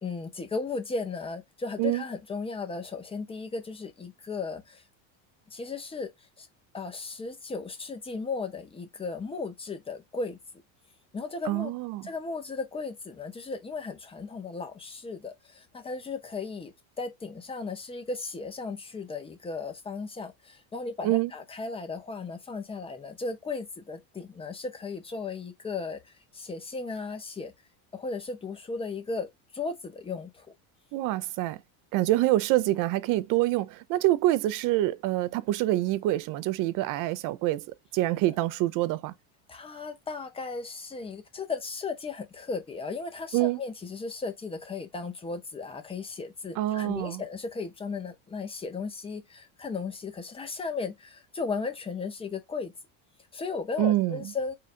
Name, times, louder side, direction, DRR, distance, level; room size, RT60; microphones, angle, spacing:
voice 1, 0.0-4.8 5.5-6.1 6.4-6.5 6.7-10.4 11.1-11.7 12.0-27.5 27.9-29.3 29.5-30.5 38.2-38.3 39.5-52.7 53.3-54.5, left 4 dB, 15° left, 0.7 m, -36 dB
voice 2, 11.5-12.1 21.0-21.3 30.9-31.6 31.9-37.7 37.9-39.1 43.3-43.6 46.6-47.2 53.8-54.2, right 16 dB, 50° right, 0.5 m, -26 dB
3.8 x 2.4 x 4.1 m
supercardioid pair, 135°, 44 cm